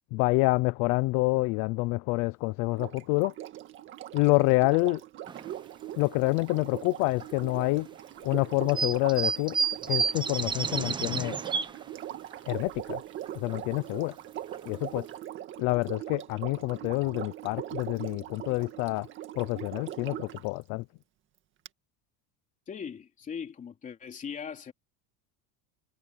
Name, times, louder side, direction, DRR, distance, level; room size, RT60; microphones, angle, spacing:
voice 1, 0.1-3.3 4.1-5.0 5.9-7.9 8.2-9.6 9.9-11.4 12.5-13.0 13.3-14.1 14.6-15.1 15.6-19.1 19.3-20.8, left 23 dB, 45° left, 0.5 m, -27 dB
Sink (filling or washing), 2.7-20.5 21.6-21.7, right 12 dB, 30° right, 1.9 m, -41 dB
sound 1, 5.3-5.6 6.1-6.2 7.2-7.3 8.7-11.9 12.3-12.4 12.7-12.8 13.3-13.5 14.1-14.2 14.5-14.8 15.2-15.3, right 5 dB, 10° right, 0.8 m, -30 dB
voice 2, 22.7-24.7, left 7 dB, 20° left, 3.5 m, -39 dB
cardioid pair, 175°, 38 cm